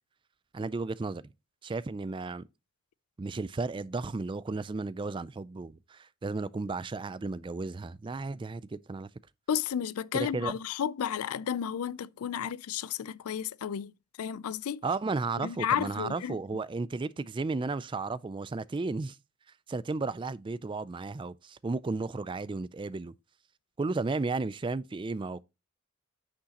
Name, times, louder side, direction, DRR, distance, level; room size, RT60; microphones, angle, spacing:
voice 1, 0.5-1.3 1.6-2.4 3.2-9.1 10.1-10.5 14.8-19.2 19.7-23.1 23.8-25.4, right 3 dB, 20° right, 0.3 m, -34 dB
voice 2, 9.5-14.8 15.4-16.4, left 8 dB, 85° left, 0.4 m, -32 dB
9.6 x 6.3 x 2.9 m
head